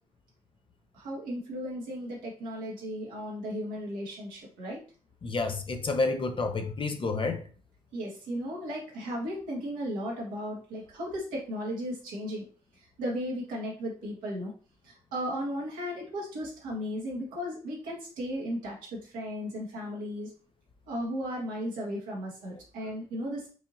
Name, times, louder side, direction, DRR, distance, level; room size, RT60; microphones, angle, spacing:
voice 1, 0.9-4.8 7.9-12.4 13.0-14.5 14.8-20.3 20.9-23.5, equal, 80° right, 1.4 m, -35 dB
voice 2, 5.2-7.4, left 3 dB, 40° left, 0.7 m, -29 dB
4.7 x 2.8 x 2.7 m
hypercardioid pair, 40°, 14 cm